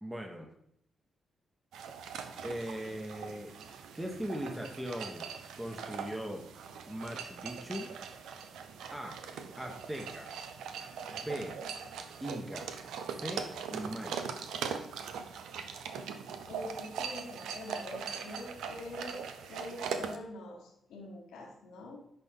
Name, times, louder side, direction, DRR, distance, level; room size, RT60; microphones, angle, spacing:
voice 1, 0.0-0.5 2.4-3.5 3.9-5.3 5.6-6.4 6.9-7.9 8.9-9.2 9.6-10.3 11.1-11.6 12.2-12.7 13.1-14.3, equal, 15° right, 2 dB, 1.3 m, -39 dB
sound 1, 1.7-20.2, right 6 dB, 80° right, 0.6 m, -41 dB
voice 2, 16.5-22.0, left 2 dB, 80° left, 0 dB, 1.2 m, -45 dB
10.5 x 4.3 x 3.7 m, 0.75 s
supercardioid pair, 50°, 0 cm